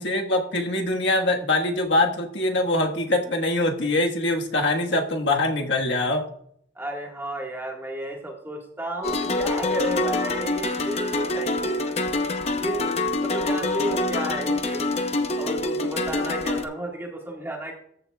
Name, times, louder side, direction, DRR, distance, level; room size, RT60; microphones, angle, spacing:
voice 1, 0.0-6.2, left 2 dB, 70° left, 2 dB, 1.5 m, -23 dB
voice 2, 6.7-11.8 12.5-14.9 15.4-17.7, right 1 dB, 10° right, 0 dB, 1.6 m, -32 dB
sound 1, 9.0-16.6, left 2 dB, 35° left, 0.7 m, -26 dB
14.0 x 7.5 x 2.3 m, 0.65 s
head